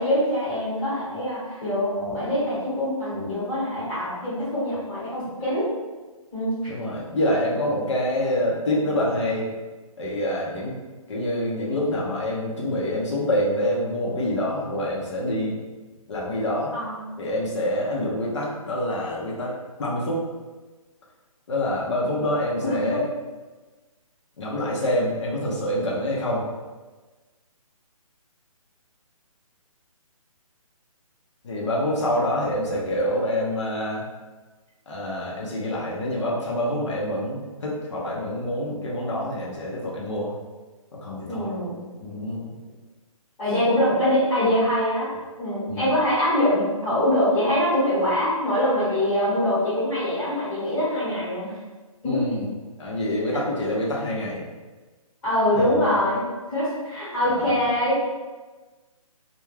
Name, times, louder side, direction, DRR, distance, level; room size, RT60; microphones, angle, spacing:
voice 1, 0.0-5.7 6.3-6.5 16.7-17.2 22.6-23.0 41.3-41.8 43.4-45.1 45.4-51.6 52.0-52.2 55.2-58.1, left 1 dB, 15° left, -12 dB, 1.0 m, -24 dB
voice 2, 6.7-9.5 10.0-10.8 11.1-15.6 16.1-16.7 17.2-19.5 19.8-20.2 21.5-23.0 24.4-26.4 31.4-34.0 34.9-40.3 40.9-41.5 42.0-42.5 45.7-45.9 52.0-52.5 52.8-54.4 57.2-57.6, left 1 dB, 55° left, -4 dB, 0.7 m, -26 dB
2.3 x 2.2 x 3.1 m, 1.3 s
hypercardioid pair, 165°, 18 cm